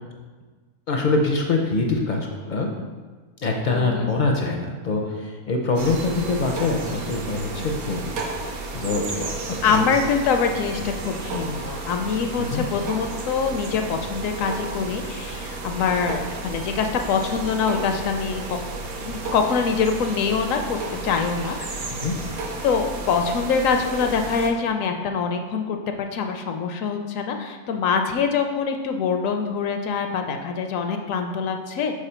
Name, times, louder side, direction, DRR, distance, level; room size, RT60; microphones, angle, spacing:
voice 1, 0.9-2.7 3.4-8.0 8.7-9.8 12.4-12.6 21.9-22.1, left 3 dB, 50° left, 1 dB, 0.5 m, -24 dB
voice 2, 3.7-4.1 9.6-18.6 19.0-20.8 21.0-22.1 22.6-32.0, left 5 dB, 70° left, 5 dB, 0.9 m, -24 dB
sound 1, 5.8-24.5, right 3 dB, 70° right, 1.3 m, -32 dB
4.9 x 4.7 x 5.6 m, 1.4 s
omnidirectional pair, 1.6 m